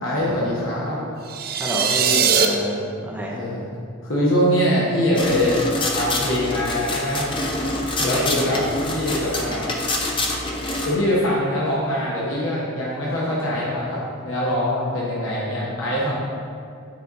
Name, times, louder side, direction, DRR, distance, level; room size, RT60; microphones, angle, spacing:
voice 1, 0.0-1.0 3.3-3.7 4.0-5.6 6.0-7.3 8.0-9.7 10.8-16.2, equal, 65° left, -6 dB, 1.2 m, -23 dB
sound 1, 1.3-2.5, right 7 dB, 45° right, 0.4 m, -20 dB
voice 2, 1.6-2.8 3.0-3.4 8.0-8.3, equal, 5° right, -4 dB, 0.9 m, -27 dB
sound 2, 5.2-10.9, left 2 dB, 25° left, 0.6 m, -26 dB
8.9 x 4.2 x 4.1 m, 2.4 s
head